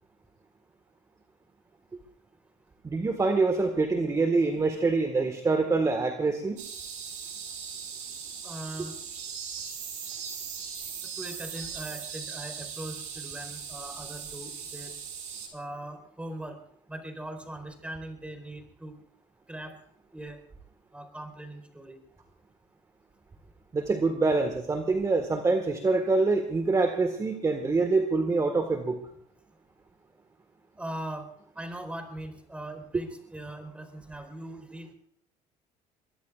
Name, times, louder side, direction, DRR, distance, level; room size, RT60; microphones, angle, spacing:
voice 1, 2.8-6.6 23.7-29.0, right 3 dB, 25° right, 7 dB, 1.7 m, -25 dB
sound 1, 6.6-15.5, right 7 dB, 65° right, 6.0 m, -39 dB
voice 2, 8.4-8.9 11.2-14.9 15.5-16.6 16.9-19.0 19.5-19.8 20.1-20.4 20.9-22.0 30.8-31.3 31.5-34.9, right 1 dB, 10° right, 6 dB, 4.4 m, -40 dB
23.5 x 22.0 x 2.5 m, 0.67 s
cardioid pair, 100°, 14 cm